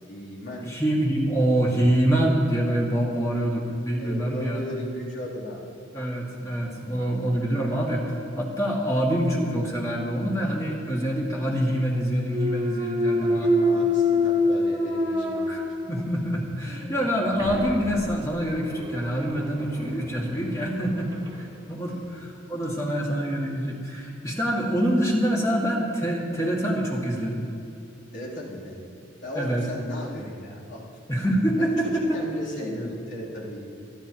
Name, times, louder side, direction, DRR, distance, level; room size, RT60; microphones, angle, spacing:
voice 1, 0.0-0.7 4.0-5.6 13.2-15.5 21.8-22.0 28.1-28.8 29.2-30.8 31.6-33.6, equal, 70° left, -6 dB, 3.1 m, -36 dB
voice 2, 0.6-4.6 5.9-13.5 15.5-27.4 29.4-29.6 31.1-32.2 32.6-32.7, equal, 15° left, -3 dB, 1.9 m, -25 dB
Thump thud, 12.2-16.2 16.7-21.4, left 2 dB, 20° right, 1.4 m, -27 dB
26.0 x 10.0 x 2.9 m, 2.6 s
head